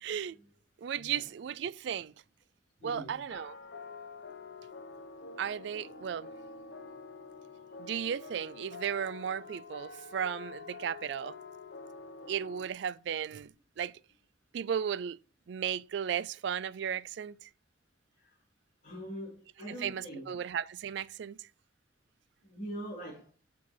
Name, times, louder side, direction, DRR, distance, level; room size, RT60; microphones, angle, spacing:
voice 1, 0.0-0.4 0.8-2.1 2.8-3.6 5.4-6.3 7.8-11.4 12.3-13.9 14.5-15.2 15.5-17.5 19.8-21.4, right 8 dB, 65° right, 0.3 m, -35 dB
voice 2, 2.8-3.1 18.2-18.3 18.8-20.3 22.4-23.2, equal, 40° left, 3.0 m, -43 dB
sound 1, 3.3-12.7, left 4 dB, 60° left, 1.0 m, -47 dB
6.0 x 5.9 x 6.2 m
head